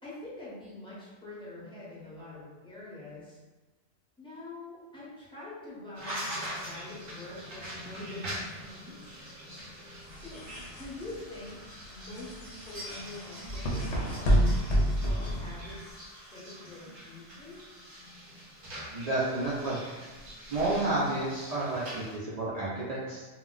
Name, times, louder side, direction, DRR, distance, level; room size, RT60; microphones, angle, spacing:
voice 1, 0.0-3.4 4.2-9.1 10.1-10.4 10.8-11.6 11.9-17.6, left 2 dB, 5° left, -8 dB, 0.7 m, -45 dB
sound 1, 5.9-22.2, equal, 55° right, 0.8 m, -43 dB
sound 2, 10.0-15.9, equal, 75° left, 0.8 m, -29 dB
voice 2, 18.9-19.8 20.5-23.2, right 2 dB, 75° right, -7 dB, 0.3 m, -30 dB
2.2 x 2.1 x 3.7 m, 1.2 s
omnidirectional pair, 1.2 m